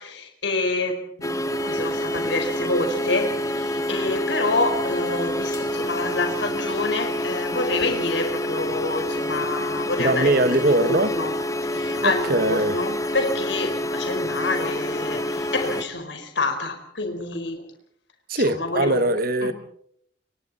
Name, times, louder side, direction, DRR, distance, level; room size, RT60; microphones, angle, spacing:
voice 1, 0.0-11.4 11.7-17.6 18.4-19.0 19.4-19.5, left 2 dB, 70° left, 4.6 m, -27 dB
sound 1, 1.2-15.8, left 1 dB, 15° left, 2.1 m, -27 dB
voice 2, 10.0-11.1 12.0-12.8 18.3-19.5, right 2 dB, 50° right, 1.4 m, -21 dB
29.0 x 25.0 x 4.2 m
head